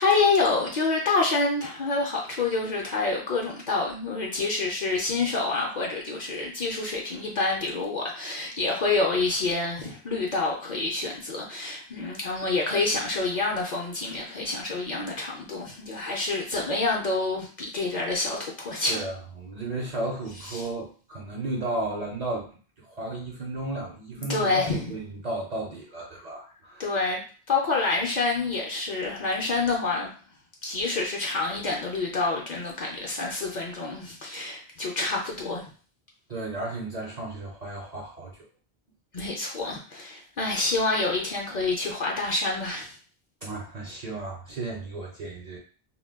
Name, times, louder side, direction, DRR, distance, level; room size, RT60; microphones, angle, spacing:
voice 1, 0.0-19.0 20.5-20.6 24.3-24.8 26.8-27.2 27.5-30.1 30.6-35.6 39.1-43.0, left 3 dB, 55° left, -1 dB, 0.5 m, -27 dB
voice 2, 18.9-27.0 36.3-38.4 43.4-45.6, right 2 dB, 50° right, -2 dB, 0.5 m, -34 dB
2.1 x 2.1 x 3.4 m, 0.39 s
omnidirectional pair, 1.1 m